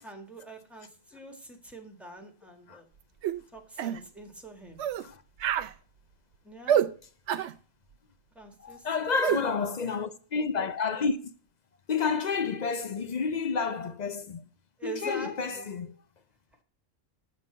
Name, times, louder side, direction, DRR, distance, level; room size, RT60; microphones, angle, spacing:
voice 1, 0.0-2.9 3.5-4.8 6.4-6.8 8.3-8.9 9.3-9.8 14.8-15.7, right 3 dB, ahead, 1.6 m, -45 dB
sound 1, 3.2-3.4 3.8-4.0 4.8-5.1 5.4-5.7 6.7-6.9 7.3-7.5 9.2-9.4, right 10 dB, 65° right, 0.8 m, -26 dB
voice 2, 8.6-11.3 11.9-14.4 14.8-16.0, left 5 dB, 45° left, 0.6 m, -30 dB
7.6 x 6.2 x 5.4 m
omnidirectional pair, 1.4 m